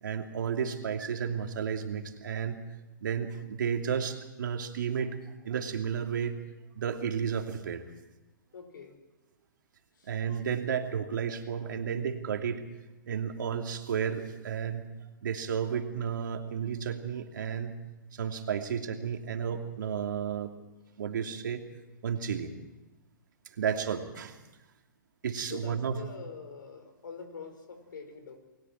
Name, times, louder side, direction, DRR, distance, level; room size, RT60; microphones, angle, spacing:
voice 1, 0.0-2.6 3.0-6.4 6.7-7.8 10.1-12.6 13.0-14.9 15.2-17.8 18.1-20.5 21.0-21.6 22.0-22.5 23.6-24.4 25.2-26.0, right 7 dB, 70° right, 4 dB, 2.9 m, -32 dB
voice 2, 8.5-9.0 10.0-10.1 25.5-28.4, left 5 dB, 75° left, 7 dB, 5.2 m, -45 dB
30.0 x 21.0 x 4.6 m, 1.1 s
hypercardioid pair, 120°, 11 cm